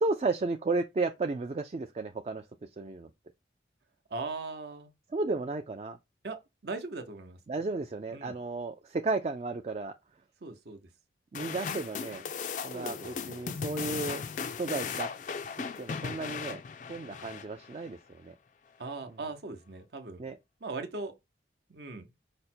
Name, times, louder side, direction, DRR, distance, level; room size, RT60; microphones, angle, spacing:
voice 1, 0.0-2.5 2.8-3.1 5.1-6.0 7.5-9.9 11.3-12.2 12.6-14.2 14.6-15.1 15.6-16.6 16.9-18.3 20.2-20.4, right 3 dB, 35° right, 0.3 m, -33 dB
voice 2, 4.1-4.9 6.2-7.4 8.1-8.4 10.4-10.9 12.7-13.8 17.0-17.3 18.8-20.3 20.6-21.1 21.7-22.1, right 3 dB, 65° right, 0.8 m, -40 dB
sound 1, 11.3-17.9, left 6 dB, 45° left, 0.3 m, -37 dB
5.1 x 2.1 x 4.3 m
head